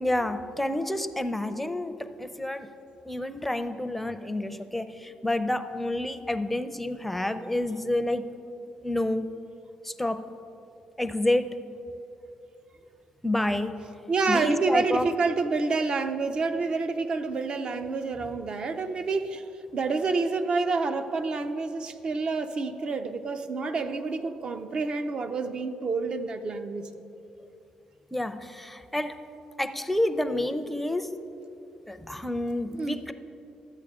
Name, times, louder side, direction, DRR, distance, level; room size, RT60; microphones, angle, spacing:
voice 1, 0.0-2.7 3.1-8.3 8.8-9.3 9.8-10.2 11.0-11.5 13.2-13.7 14.3-15.1 28.1-29.1 29.6-31.1 31.9-33.1, left 1 dB, 5° left, 10 dB, 0.5 m, -29 dB
voice 2, 14.1-19.4 19.7-26.9 32.7-33.0, right 4 dB, 50° right, 8 dB, 0.5 m, -28 dB
12.5 x 8.1 x 3.6 m, 2.8 s
cardioid pair, 85°, 2 cm